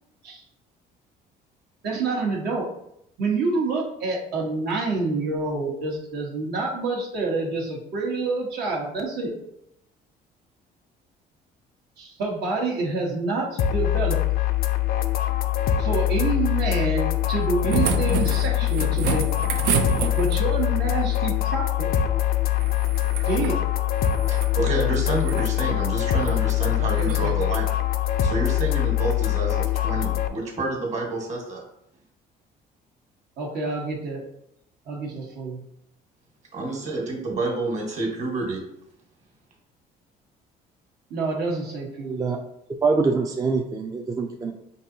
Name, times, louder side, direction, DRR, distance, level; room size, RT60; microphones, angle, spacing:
voice 1, 1.8-2.7 3.2-9.3 12.0-14.2 15.8-19.3 19.9-21.9 23.2-23.6 26.8-27.3 33.4-34.2 34.9-35.6 41.1-42.3, right 3 dB, 75° right, -2 dB, 1.1 m, -27 dB
sound 1, 13.6-30.3, left 13 dB, 65° left, 0.4 m, -23 dB
sound 2, 17.3-20.6 22.5-23.6 23.9-24.5 25.1-25.5 26.2-26.4 26.9-27.2 28.6-28.7, right 7 dB, 90° right, 0.5 m, -29 dB
voice 2, 24.3-27.7 28.2-31.6 36.5-38.6, right 2 dB, 45° right, -1 dB, 1.4 m, -28 dB
voice 3, 42.0-42.4 42.8-44.5, right 4 dB, 20° right, 1 dB, 0.4 m, -24 dB
5.3 x 2.6 x 2.7 m, 0.75 s
cardioid pair, 110°, 17 cm